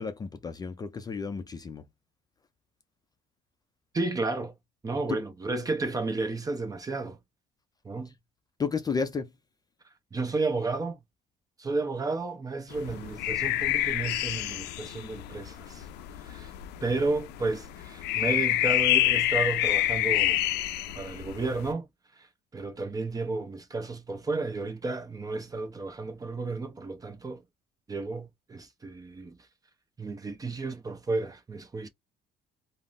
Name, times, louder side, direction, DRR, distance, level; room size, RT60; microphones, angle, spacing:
voice 1, 0.0-1.8 5.1-5.2 8.6-9.3, left 5 dB, 25° left, 0.4 m, -32 dB
voice 2, 3.9-4.5 4.8-7.2 7.8-8.1 10.1-11.0 11.6-15.8 16.2-16.5 16.8-20.4 21.0-21.9 22.2-22.3 22.5-27.4 27.9-29.4 30.0-31.9, right 3 dB, 20° right, 0.6 m, -32 dB
sound 1, 12.7-21.7, left 14 dB, 85° left, 0.4 m, -28 dB
3.6 x 2.0 x 2.4 m
cardioid pair, 110°, 17 cm